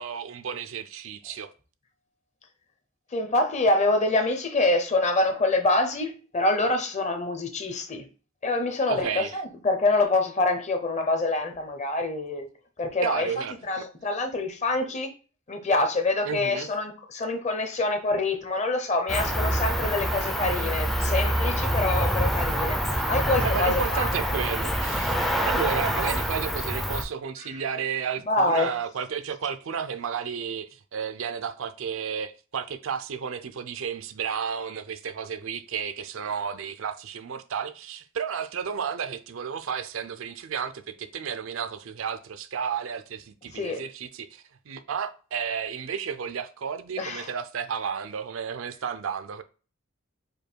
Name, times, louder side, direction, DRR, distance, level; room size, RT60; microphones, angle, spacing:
voice 1, 0.0-1.5 8.9-9.4 13.0-13.8 16.2-16.7 23.4-25.1 25.4-49.4, right 7 dB, 65° right, 0.4 m, -32 dB
voice 2, 3.1-8.1 8.4-12.5 12.8-13.3 13.7-15.1 15.5-24.1 28.3-28.7 43.5-43.8 47.0-47.3, left 2 dB, 35° left, 0.7 m, -26 dB
Cricket, 19.1-27.0, equal, ahead, 0.4 m, -26 dB
5.2 x 2.2 x 4.5 m
head